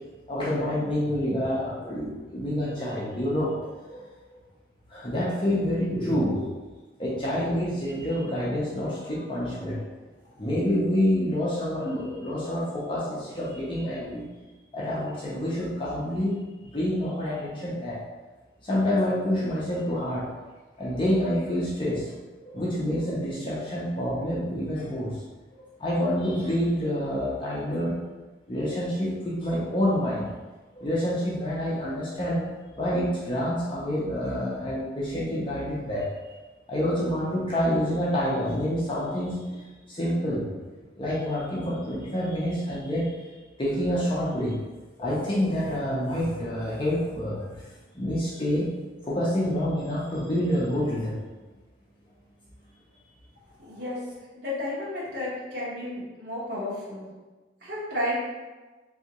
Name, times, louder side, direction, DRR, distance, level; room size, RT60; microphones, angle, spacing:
voice 1, 0.3-4.0 4.3-4.4 4.9-6.5 7.0-9.8 10.4-14.2 14.7-16.4 16.7-18.0 18.6-20.3 20.8-22.1 22.4-25.2 25.8-28.0 28.5-30.3 30.7-32.4 32.8-36.1 36.7-40.5 40.9-43.2 43.6-44.6 45.0-47.4 47.9-48.7 49.0-51.2, equal, 30° left, -7 dB, 0.6 m, -27 dB
voice 2, 53.6-54.0 54.3-57.1 57.6-58.2, left 1 dB, 60° right, -9 dB, 1.1 m, -32 dB
3.4 x 2.7 x 2.9 m, 1.2 s
head